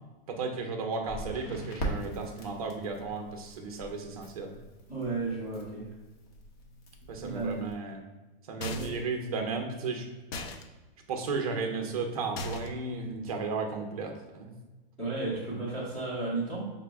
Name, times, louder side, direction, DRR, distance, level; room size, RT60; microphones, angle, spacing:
voice 1, 0.3-4.5 7.1-8.0 8.5-10.1 11.1-14.5, right 4 dB, 40° right, 4 dB, 0.5 m, -34 dB
Crackle, 1.0-7.7, right 1 dB, 40° left, 0.8 m, -42 dB
voice 2, 4.9-5.9 7.2-7.7 8.7-8.9 15.0-16.7, right 3 dB, 5° left, -11 dB, 0.6 m, -33 dB
sound 1, 8.6-9.1 10.3-10.6 12.4-12.9, left 2 dB, 85° left, 0.6 m, -37 dB
5.5 x 2.0 x 3.3 m, 1.2 s
supercardioid pair, 180°, 30 cm